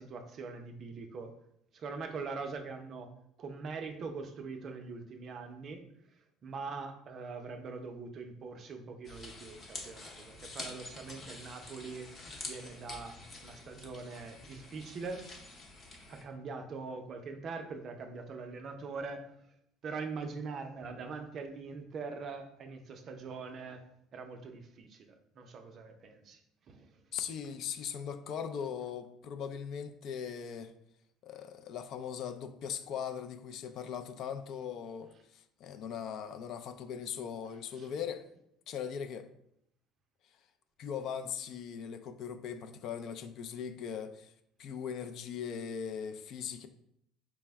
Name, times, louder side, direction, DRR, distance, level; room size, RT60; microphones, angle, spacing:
voice 1, 0.0-1.4 1.7-3.1 3.4-5.8 6.2-12.1 12.4-13.2 13.4-15.2 16.0-19.3 19.8-23.9 24.1-26.4 26.7-27.0 37.8-37.9, right 4 dB, 45° right, 6 dB, 0.5 m, -42 dB
sound 1, 9.0-16.2, left 2 dB, 30° left, 0.8 m, -47 dB
voice 2, 27.1-30.7 31.2-38.3 38.7-39.3 40.8-44.3 44.6-46.7, left 7 dB, 55° left, 9 dB, 0.4 m, -39 dB
4.5 x 2.1 x 3.4 m, 0.75 s
cardioid pair, 120°, 0 cm